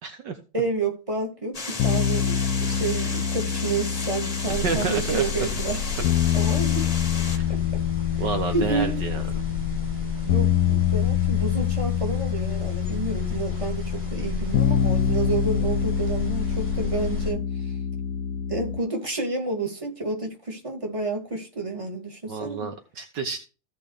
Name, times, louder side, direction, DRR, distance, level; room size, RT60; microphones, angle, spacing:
voice 1, 0.0-0.4 4.6-5.2 7.3-7.4 8.2-9.2 22.3-23.4, right 5 dB, 65° right, 1.8 m, -29 dB
voice 2, 0.5-5.8 6.3-6.9 7.5-7.6 8.1-8.2 8.5-9.2 10.2-17.8 18.5-22.7, right 3 dB, 15° right, 2.7 m, -30 dB
sound 1, 1.5-7.4, left 3 dB, 20° left, 1.2 m, -34 dB
sound 2, 1.8-18.8, left 9 dB, 65° left, 1.2 m, -26 dB
sound 3, 4.4-17.3, left 4 dB, 5° left, 6.5 m, -32 dB
16.0 x 5.4 x 3.4 m
omnidirectional pair, 2.1 m